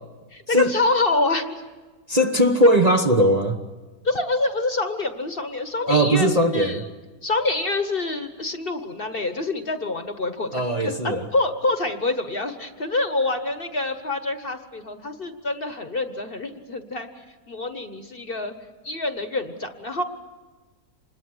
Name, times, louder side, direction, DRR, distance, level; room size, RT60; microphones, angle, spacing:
voice 1, 0.3-1.6 4.0-6.8 7.2-17.1 17.5-18.5 18.8-20.0, left 2 dB, 40° left, 1.3 m, -26 dB
voice 2, 2.1-3.6 5.9-6.8 10.5-11.2, right 1 dB, 30° right, 1.0 m, -19 dB
26.5 x 21.0 x 7.9 m
omnidirectional pair, 1.7 m